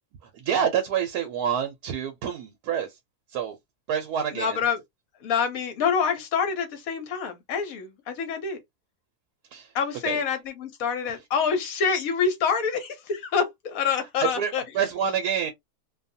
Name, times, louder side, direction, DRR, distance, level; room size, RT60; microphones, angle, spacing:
voice 1, 0.3-2.9 3.3-3.6 3.9-4.6 9.5-9.7 10.0-10.2 14.2-15.5, right 8 dB, 80° right, 1.1 m, -27 dB
voice 2, 4.3-4.8 5.2-8.6 9.7-14.6, left 6 dB, 70° left, 1.2 m, -26 dB
2.7 x 2.3 x 2.6 m
omnidirectional pair, 1.6 m